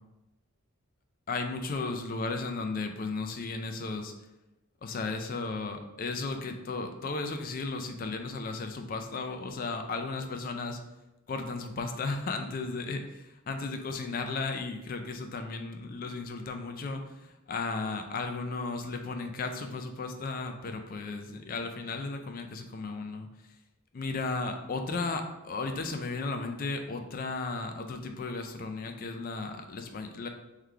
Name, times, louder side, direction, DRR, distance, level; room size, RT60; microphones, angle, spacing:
voice 1, 1.3-4.1 4.8-10.8 11.3-23.5 23.9-30.3, left 3 dB, 40° left, 6 dB, 0.3 m, -35 dB
3.8 x 3.1 x 3.3 m, 1.0 s
head